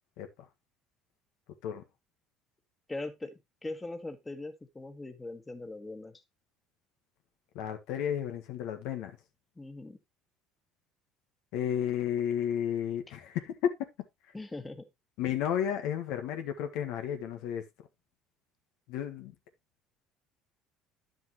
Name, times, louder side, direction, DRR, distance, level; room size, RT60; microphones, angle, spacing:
voice 1, 2.9-6.2 9.5-10.0 14.3-14.9, left 2 dB, 15° left, 1.7 m, -41 dB
voice 2, 7.5-9.1 11.5-13.7 15.2-17.6 18.9-19.3, left 9 dB, 75° left, 1.6 m, -32 dB
10.0 x 7.1 x 3.0 m
supercardioid pair, 90°, 0 cm